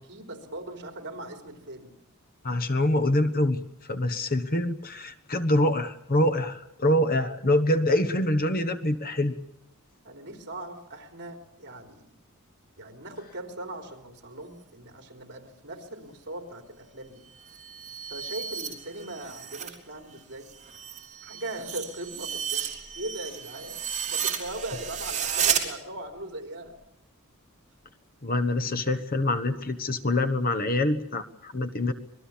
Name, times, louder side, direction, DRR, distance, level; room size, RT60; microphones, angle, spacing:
voice 1, 0.0-1.9 10.0-12.1 12.8-17.3 18.1-20.5 21.2-23.8 24.0-26.8, right 1 dB, 55° right, 5 dB, 3.7 m, -39 dB
voice 2, 2.4-3.6 3.9-9.3 28.2-31.9, left 1 dB, 45° left, 10 dB, 1.3 m, -25 dB
sound 1, 17.4-19.8 20.1-25.6, right 8 dB, 35° right, 3.5 m, -32 dB
26.0 x 20.0 x 7.3 m, 0.81 s
head